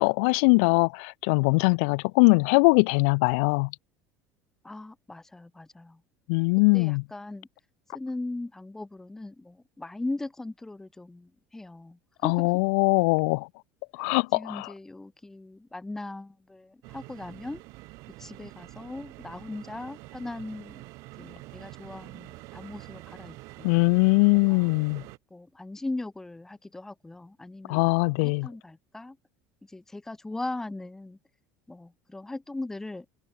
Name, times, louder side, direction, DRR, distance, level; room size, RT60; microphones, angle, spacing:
voice 1, 0.0-3.7 6.3-7.0 12.2-13.5 13.9-14.7 23.6-25.0 27.7-28.5, left 32 dB, 70° left, 0.6 m, -22 dB
voice 2, 4.6-6.0 6.7-7.5 7.9-12.5 14.3-17.6 18.2-20.8 21.2-23.7 24.3-24.7 25.3-29.2 29.7-31.2 31.7-33.1, left 2 dB, 5° left, 3.6 m, -39 dB
sound 1, 16.8-25.2, right 22 dB, 55° right, 5.0 m, -46 dB
cardioid pair, 170°, 7 cm